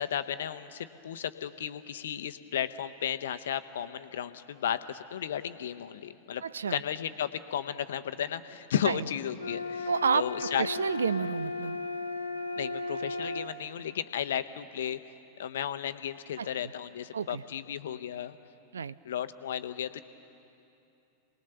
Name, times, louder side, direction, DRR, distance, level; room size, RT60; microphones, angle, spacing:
voice 1, 0.0-6.4 6.7-10.7 12.6-15.0 15.4-18.4 19.0-20.0, left 9 dB, 60° left, 11 dB, 0.8 m, -34 dB
voice 2, 6.4-6.8 8.8-9.0 9.9-11.8 16.4-16.5 17.1-17.4 18.7-19.0, right 6 dB, 70° right, 18 dB, 0.5 m, -30 dB
sound 1, 9.4-13.5, left 3 dB, 85° left, 1.2 m, -35 dB
28.0 x 19.5 x 6.9 m, 2.8 s
figure-of-eight pair, 90°, 0 cm